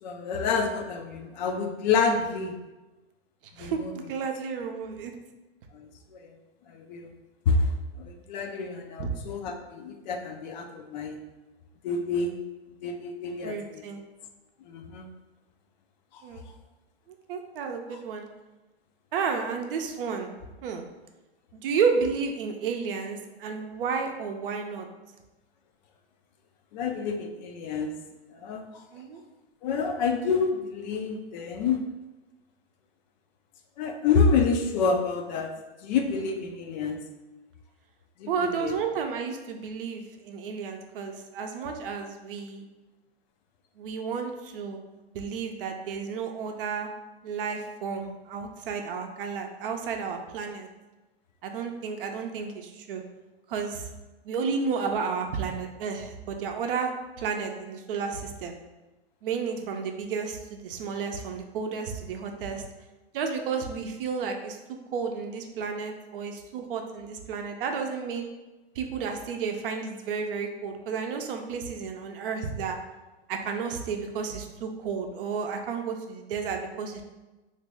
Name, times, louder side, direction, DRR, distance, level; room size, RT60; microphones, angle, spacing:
voice 1, 0.0-2.6 3.6-3.9 5.7-6.2 6.7-7.1 7.5-7.7 8.0-11.2 11.8-12.3 12.8-13.8 14.7-15.1 16.1-16.2 26.7-27.9 28.3-28.6 29.6-31.8 33.8-35.5 35.8-37.0 38.2-38.8, left 5 dB, 45° left, 4 dB, 0.4 m, -28 dB
voice 2, 3.6-5.1 9.0-9.1 13.4-14.0 16.2-16.5 17.1-18.3 19.1-20.3 20.6-20.9 21.5-24.9 28.9-29.2 38.3-42.6 43.8-44.8 45.1-46.9 47.2-50.7 51.4-53.0 53.5-53.9 54.2-58.5 59.2-62.6 63.1-64.6 64.9-68.3 68.7-72.8 73.3-77.0, right 5 dB, 55° right, 4 dB, 0.6 m, -32 dB
2.9 x 2.6 x 3.4 m, 1.1 s
hypercardioid pair, 110°, 32 cm